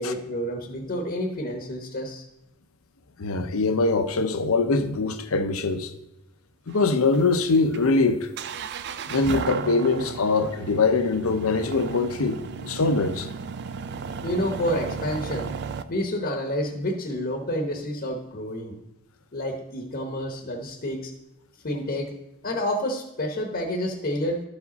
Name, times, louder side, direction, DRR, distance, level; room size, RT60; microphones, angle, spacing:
voice 1, 0.0-2.3 14.2-15.5 15.9-18.8 19.3-21.1 21.6-22.1 22.4-24.4, equal, 45° left, 0.9 m, -29 dB
voice 2, 3.2-5.9 6.7-8.3 9.1-13.3, left 3 dB, 70° left, 0.7 m, -23 dB
sound 1, 6.7-15.8, right 5 dB, 50° right, 0.4 m, -35 dB
12.5 x 5.0 x 4.1 m
head